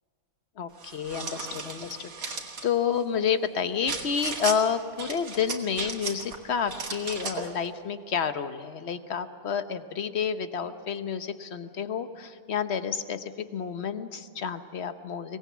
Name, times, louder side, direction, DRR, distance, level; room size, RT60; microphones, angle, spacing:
voice 1, 0.6-2.4 2.6-15.4, left 7 dB, 50° left, 10 dB, 1.1 m, -30 dB
sound 1, 0.8-2.7 3.9-4.6 5.0-6.4 6.7-7.5, right 4 dB, 70° right, 2.4 m, -35 dB
23.5 x 18.5 x 7.4 m, 2.3 s
omnidirectional pair, 1.6 m